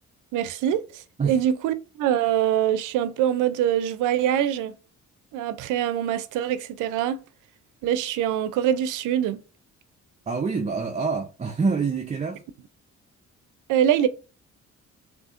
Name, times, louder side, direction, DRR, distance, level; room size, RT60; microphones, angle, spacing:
voice 1, 0.3-4.7 5.3-7.2 7.8-9.4 13.7-14.1, right 10 dB, 90° right, 0.5 m, -24 dB
voice 2, 10.3-12.5, right 4 dB, 25° right, 0.5 m, -26 dB
6.2 x 2.8 x 2.5 m
cardioid pair, 90°, 30 cm